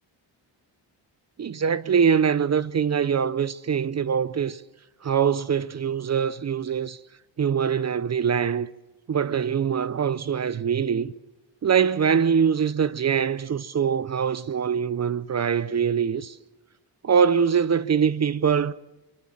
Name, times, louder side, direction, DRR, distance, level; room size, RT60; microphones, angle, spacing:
voice 1, 1.4-4.6 5.0-7.0 7.4-8.7 9.1-11.1 11.6-16.4 17.0-18.7, right 7 dB, 35° right, 0.7 m, -23 dB
25.0 x 22.5 x 7.5 m
cardioid pair, 80°, 45 cm